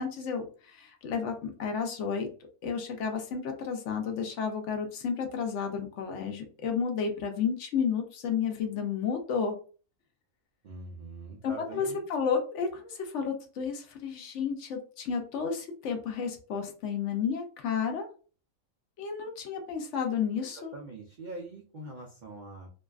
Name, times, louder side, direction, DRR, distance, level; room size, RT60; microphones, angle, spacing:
voice 1, 0.0-2.3 2.6-9.6 11.4-18.1 19.0-20.7, left 6 dB, 70° left, 4 dB, 0.8 m, -32 dB
voice 2, 10.6-12.0 20.4-22.7, right 2 dB, 85° right, 0 dB, 0.4 m, -43 dB
2.5 x 2.2 x 2.3 m, 0.39 s
omnidirectional pair, 1.4 m